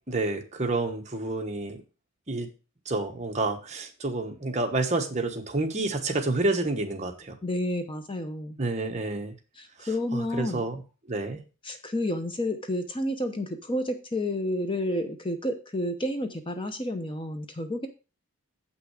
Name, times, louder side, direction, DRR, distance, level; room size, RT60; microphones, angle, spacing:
voice 1, 0.1-1.8 2.3-2.5 2.8-7.3 8.6-9.3 9.8-10.8 11.1-11.4, right 2 dB, 30° right, 3 dB, 1.2 m, -29 dB
voice 2, 7.4-8.6 9.6-10.6 11.6-17.9, left 1 dB, 25° left, 7 dB, 0.7 m, -30 dB
7.6 x 5.9 x 4.8 m, 0.32 s
head